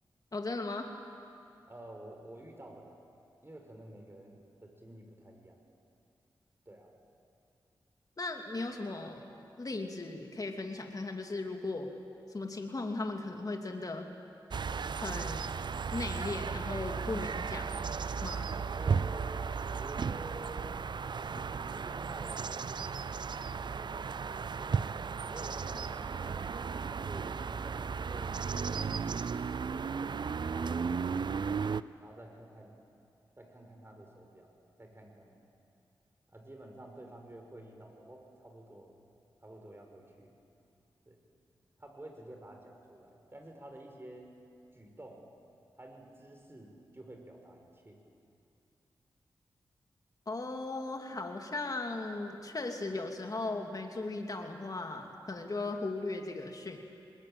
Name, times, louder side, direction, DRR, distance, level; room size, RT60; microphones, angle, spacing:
voice 1, 0.3-0.9 8.2-9.2 9.6-11.9 12.3-14.1 14.9-15.5 15.9-17.7 18.2-18.5 50.3-56.8, left 2 dB, 45° left, 3 dB, 2.5 m, -37 dB
voice 2, 1.7-3.0 3.4-5.6 6.7-6.9 18.7-20.8 21.4-26.5 26.9-29.1 30.5-31.6 32.0-32.8 33.4-34.5 34.8-35.4 36.3-39.0 39.4-40.4 41.1-41.2 41.8-44.3 44.7-45.3 45.8-48.0, right 1 dB, 25° right, 2 dB, 5.6 m, -50 dB
sound 1, 14.5-31.8, right 5 dB, 60° right, 0.5 m, -35 dB
21.0 x 20.5 x 9.0 m, 2.6 s
cardioid pair, 40°, 9 cm